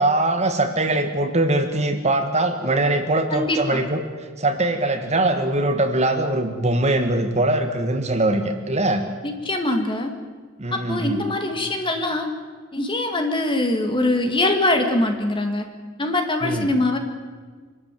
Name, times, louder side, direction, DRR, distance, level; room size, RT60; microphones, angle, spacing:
voice 1, 0.0-4.0 4.4-9.0 10.6-11.2 16.4-16.7, right 2 dB, 35° right, 6 dB, 1.7 m, -22 dB
voice 2, 3.3-3.8 9.2-10.1 10.7-12.3 12.7-15.6 16.0-17.0, left 2 dB, 25° left, 5 dB, 2.2 m, -23 dB
25.0 x 13.0 x 9.3 m, 1.5 s
head